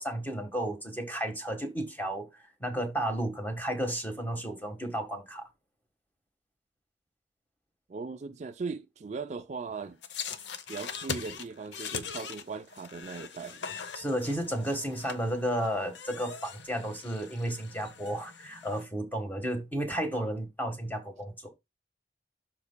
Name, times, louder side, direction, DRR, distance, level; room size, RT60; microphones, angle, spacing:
voice 1, 0.0-5.5 13.9-21.5, right 1 dB, 10° left, 1.4 m, -33 dB
voice 2, 7.9-10.0 10.7-13.6, right 4 dB, 40° right, 0.4 m, -39 dB
sound 1, 10.0-18.8, left 6 dB, 75° left, 0.7 m, -41 dB
12.0 x 4.7 x 2.2 m
head